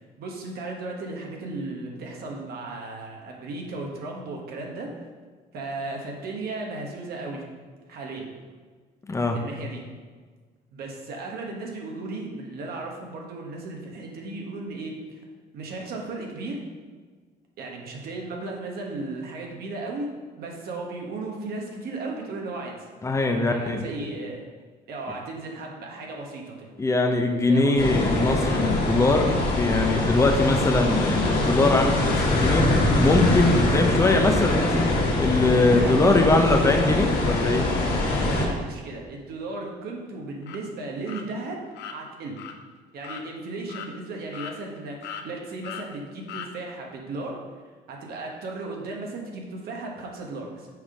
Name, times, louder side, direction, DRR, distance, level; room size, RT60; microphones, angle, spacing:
voice 1, 0.0-4.9 5.5-7.4 7.9-8.3 9.3-9.8 10.7-15.2 15.5-16.6 17.6-20.1 20.4-22.9 23.3-24.4 24.9-26.7 27.5-27.9 35.6-36.8 38.0-41.6 41.9-42.4 42.9-47.4 47.9-50.7, right 2 dB, 65° right, 0 dB, 1.3 m, -35 dB
voice 2, 9.1-9.4 23.0-23.8 26.8-37.7, left 2 dB, 15° left, 4 dB, 0.7 m, -22 dB
sound 1, 27.8-38.5, left 2 dB, 65° left, 1.6 m, -23 dB
sound 2, 40.4-40.6 41.1-41.2 41.7-42.0 42.4-42.5 43.0-43.3 43.7-43.9 44.3-44.8 45.0-45.3 45.6-45.9 46.3-46.5, left 9 dB, 85° left, 0.6 m, -38 dB
6.3 x 3.7 x 4.9 m, 1.5 s
cardioid pair, 110°, 17 cm